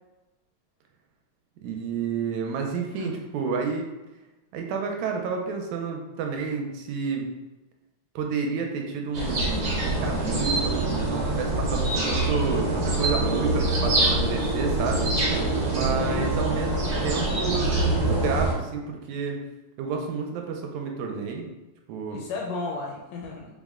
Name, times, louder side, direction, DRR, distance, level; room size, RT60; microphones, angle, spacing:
voice 1, 1.6-3.9 4.5-7.3 8.2-19.4 19.8-21.5 21.9-22.2, right 5 dB, 80° right, 2 dB, 1.8 m, -30 dB
sound 1, 9.1-18.5, right 2 dB, 55° right, 1.6 m, -25 dB
voice 2, 16.0-16.4 22.1-23.5, left 3 dB, 80° left, -1 dB, 1.5 m, -34 dB
4.9 x 2.1 x 3.5 m, 1.1 s
omnidirectional pair, 3.3 m